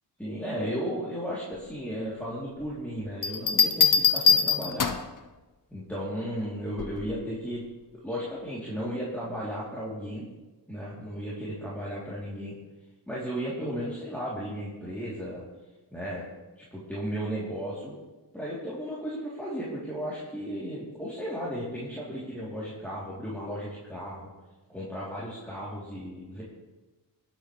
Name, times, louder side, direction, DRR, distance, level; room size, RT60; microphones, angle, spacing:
voice 1, 0.2-4.9 5.7-7.6 7.9-10.3 10.7-12.6 13.1-15.4 15.9-16.2 16.7-17.9 18.3-24.3 24.7-26.4, equal, 5° left, -8 dB, 3.1 m, -35 dB
sound 1, 3.2-5.2 6.8-7.1, left 6 dB, 45° left, 0.9 m, -23 dB
24.0 x 8.4 x 3.3 m, 1.2 s
cardioid pair, 55°, 44 cm